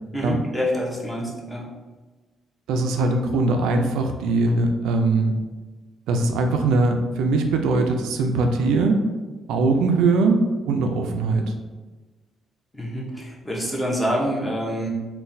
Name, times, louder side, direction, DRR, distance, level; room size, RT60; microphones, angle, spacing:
voice 1, 0.1-1.7 12.7-14.9, equal, 10° left, -3 dB, 0.8 m, -26 dB
voice 2, 2.7-5.4 6.1-9.0 9.5-10.4 10.6-11.5, right 3 dB, 90° right, 4 dB, 0.3 m, -21 dB
3.8 x 2.2 x 2.6 m, 1.3 s
cardioid pair, 90°, 0 cm